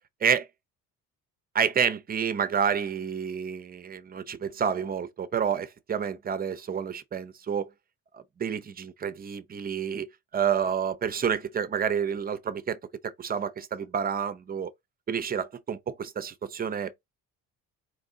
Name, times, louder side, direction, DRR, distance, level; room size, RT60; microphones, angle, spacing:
voice 1, 1.5-7.7 8.1-10.1 10.3-12.8 13.2-14.7 15.1-17.0, right 7 dB, 30° right, 0.6 m, -29 dB
4.4 x 2.4 x 3.7 m
cardioid pair, 125°, 32 cm